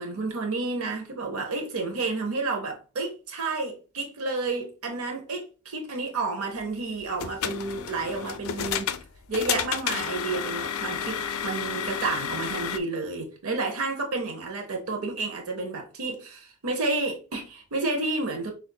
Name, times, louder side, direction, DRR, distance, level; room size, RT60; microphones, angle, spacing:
voice 1, 0.0-8.9 9.3-18.5, right 3 dB, 90° right, 0.8 m, -30 dB
sound 1, 7.0-12.8, left 8 dB, 80° left, 0.4 m, -31 dB
6.3 x 2.5 x 2.3 m
head